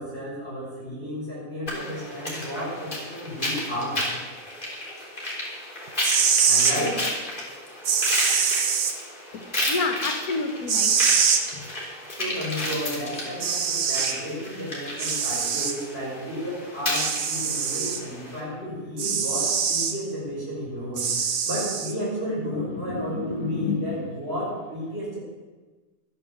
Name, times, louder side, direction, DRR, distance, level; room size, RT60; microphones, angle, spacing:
voice 1, 0.0-4.0 6.5-7.0 12.2-25.2, equal, 40° right, -5 dB, 6.2 m, -32 dB
sound 1, 1.7-18.4, left 1 dB, 30° left, 3.8 m, -32 dB
sound 2, 5.9-6.8 7.9-8.9 10.7-11.4 12.9-13.0 13.4-14.2 15.0-15.8 16.9-18.0 19.0-20.0 21.0-21.9, right 6 dB, 75° right, 1.6 m, -23 dB
voice 2, 9.7-11.0 11.5-11.6 22.6-24.0, left 3 dB, 70° left, 5 dB, 1.9 m, -29 dB
12.5 x 10.0 x 7.3 m, 1.3 s
omnidirectional pair, 1.6 m